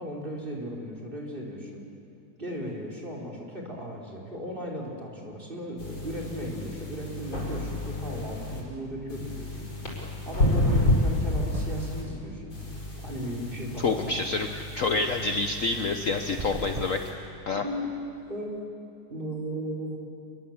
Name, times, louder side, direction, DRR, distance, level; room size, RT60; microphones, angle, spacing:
voice 1, 0.0-1.8 2.4-9.7 10.3-12.5 13.0-14.2 17.5-17.9 18.3-18.6 19.1-20.0, equal, 25° right, -1 dB, 4.0 m, -36 dB
sound 1, 5.8-8.6 9.1-12.0 12.5-17.1, left 1 dB, 70° left, 6.1 m, -30 dB
sound 2, 10.7-12.0 12.3-13.4 16.2-17.8, right 4 dB, 55° right, 0.4 m, -39 dB
voice 2, 13.8-14.5 14.7-17.0 17.5-17.6, left 3 dB, 50° left, 5 dB, 1.2 m, -27 dB
28.0 x 21.5 x 7.3 m, 2.6 s
omnidirectional pair, 2.1 m